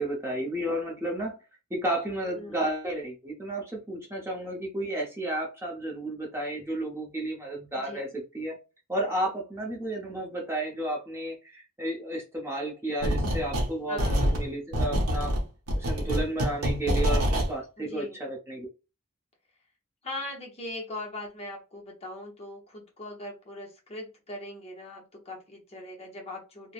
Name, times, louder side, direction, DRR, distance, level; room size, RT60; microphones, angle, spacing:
voice 1, 0.0-1.4 1.7-8.6 8.9-15.4 15.7-18.7, right 1 dB, 10° right, -1 dB, 0.7 m, -32 dB
voice 2, 2.2-2.7 7.7-8.0 13.9-14.3 17.8-18.2 20.0-26.7, left 1 dB, 30° left, -1 dB, 0.8 m, -40 dB
sound 1, 13.0-13.7 14.0-17.5, equal, 70° right, 0.8 m, -26 dB
3.2 x 2.0 x 2.4 m, 0.29 s
head